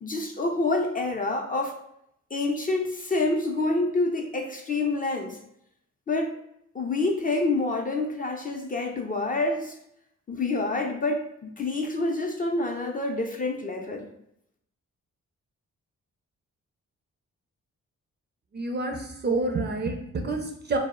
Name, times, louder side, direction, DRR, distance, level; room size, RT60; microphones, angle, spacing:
voice 1, 0.0-1.7 2.3-5.4 6.1-6.4 6.7-9.8 10.3-14.1, left 2 dB, 25° left, 1 dB, 0.4 m, -27 dB
voice 2, 18.5-20.8, right 3 dB, 35° right, 3 dB, 0.5 m, -28 dB
2.0 x 2.0 x 3.6 m, 0.75 s
supercardioid pair, 50°, 31 cm